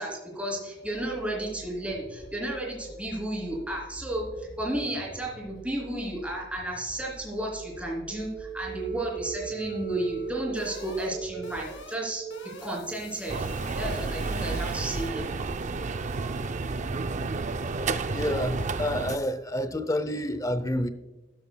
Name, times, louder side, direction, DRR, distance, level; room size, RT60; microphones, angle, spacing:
voice 1, 0.0-12.3 12.6-13.5 13.7-15.2, right 1 dB, 5° right, 3.1 m, -33 dB
sound 1, 0.9-11.8, equal, 65° left, 2.3 m, -48 dB
sound 2, 8.1-15.2, right 7 dB, 90° left, 2.7 m, -40 dB
sound 3, 13.3-19.2, right 3 dB, 40° right, 0.5 m, -31 dB
voice 2, 18.1-20.9, left 1 dB, 20° left, 0.6 m, -29 dB
12.5 x 11.5 x 2.3 m
head